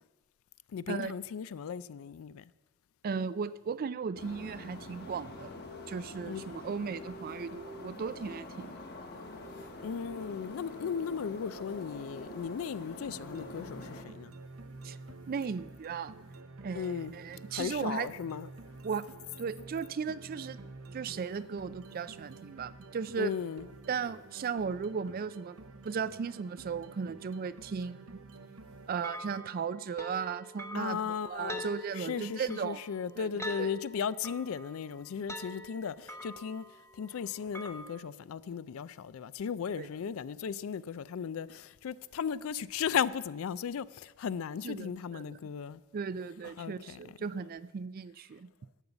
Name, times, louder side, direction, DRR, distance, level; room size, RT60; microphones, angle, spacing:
voice 1, 0.7-2.4 6.3-6.7 9.8-14.3 16.7-17.1 17.5-18.5 23.2-23.6 30.7-31.6 32.0-36.7 37.0-45.8 46.6-47.0, left 7 dB, 70° left, 0.4 m, -36 dB
voice 2, 3.0-5.5 5.9-8.8 14.8-15.0 15.3-16.1 16.6-18.1 18.8-19.0 19.4-20.6 20.9-23.3 23.9-25.6 25.8-28.2 28.9-32.8 33.2-33.7 39.8-39.9 44.6-45.4 45.9-48.5, right 6 dB, 40° right, 0.3 m, -36 dB
sound 1, 4.2-14.0, left 2 dB, 50° left, 1.2 m, -46 dB
sound 2, 13.1-28.9, right 3 dB, 70° right, 0.8 m, -50 dB
sound 3, 29.0-38.0, equal, 15° left, 0.8 m, -45 dB
12.0 x 5.4 x 7.9 m
head